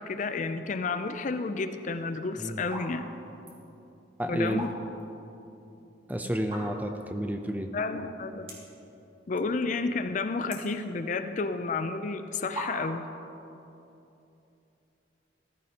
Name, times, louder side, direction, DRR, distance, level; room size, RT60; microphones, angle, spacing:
voice 1, 0.0-3.0 4.3-4.7 7.7-8.5 9.3-13.0, left 3 dB, 45° left, 9 dB, 0.4 m, -31 dB
sound 1, 1.9-2.1 2.6-2.9 3.2-3.6 4.3-5.1 5.4-5.5 6.4-7.0 7.5-7.6 7.8-7.9 8.4-8.8 9.2-9.7 10.0-11.3 12.0-12.1 12.5-13.1, right 1 dB, 30° right, 2.2 m, -39 dB
voice 2, 4.2-4.6 6.1-7.7, equal, 10° right, 5 dB, 0.6 m, -31 dB
14.5 x 14.0 x 2.9 m, 2.9 s
head